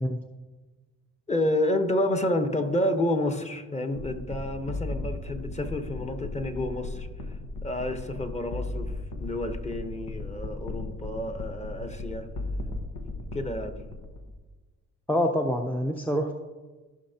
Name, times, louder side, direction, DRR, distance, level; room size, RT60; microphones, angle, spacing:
voice 1, 1.3-7.1 7.6-8.9 9.2-12.3 13.3-13.8, left 1 dB, 20° left, 7 dB, 1.0 m, -29 dB
sound 1, 3.9-14.4, left 2 dB, 90° left, 1.2 m, -36 dB
voice 2, 15.1-16.3, equal, 5° left, 3 dB, 0.6 m, -26 dB
15.0 x 5.8 x 2.8 m, 1.3 s
cardioid pair, 90°, 30 cm